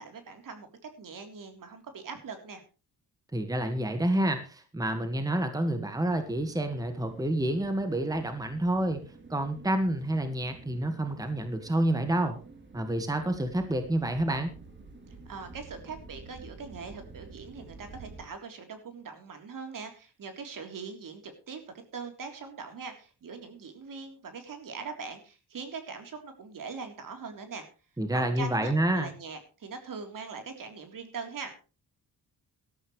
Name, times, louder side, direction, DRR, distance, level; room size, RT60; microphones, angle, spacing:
voice 1, 0.0-2.6 15.1-21.6 21.9-27.7 28.1-31.5, right 5 dB, 55° right, 5 dB, 3.6 m, -42 dB
voice 2, 3.3-9.0 9.3-12.4 12.7-14.5 28.0-29.1, right 1 dB, 10° right, 7 dB, 1.7 m, -28 dB
sound 1, 6.0-18.3, right 3 dB, 30° right, 3.6 m, -50 dB
18.0 x 13.0 x 3.2 m, 0.34 s
cardioid pair, 120°, 38 cm